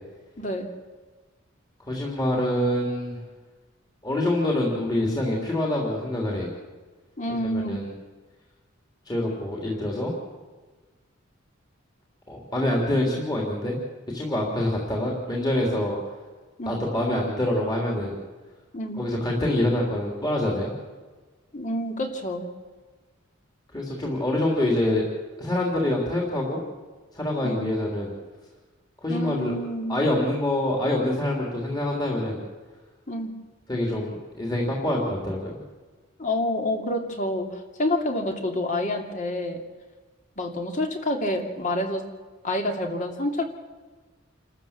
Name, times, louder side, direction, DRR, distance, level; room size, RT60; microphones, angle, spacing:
voice 1, 0.4-0.7 7.2-7.9 16.6-16.8 18.7-19.0 21.5-22.5 27.4-27.6 29.1-30.0 33.1-33.3 36.2-39.6 40.4-42.0 42.4-43.4, left 1 dB, 40° left, 3 dB, 2.6 m, -28 dB
voice 2, 1.8-3.2 4.0-6.5 7.3-7.9 9.1-10.1 12.3-13.8 14.1-16.0 16.6-18.2 19.0-20.7 23.7-25.1 25.4-26.6 27.1-28.1 29.0-29.5 29.9-32.4 33.7-35.6, left 1 dB, 20° left, -2 dB, 3.2 m, -26 dB
28.0 x 13.5 x 7.3 m, 1.3 s
head